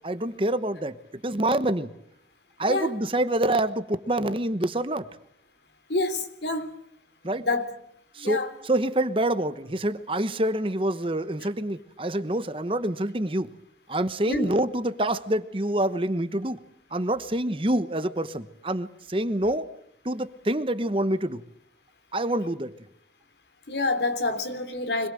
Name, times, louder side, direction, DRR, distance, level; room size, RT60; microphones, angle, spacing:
voice 1, 0.0-1.9 2.6-5.1 7.2-7.5 8.1-13.5 13.9-16.6 16.9-19.7 20.0-21.4 22.1-22.7, right 1 dB, 30° right, 1.1 m, -26 dB
voice 2, 5.9-6.7 7.4-7.7 8.2-8.5 14.3-14.5 23.7-25.1, left 2 dB, 80° left, 3.3 m, -27 dB
25.5 x 21.5 x 7.8 m
head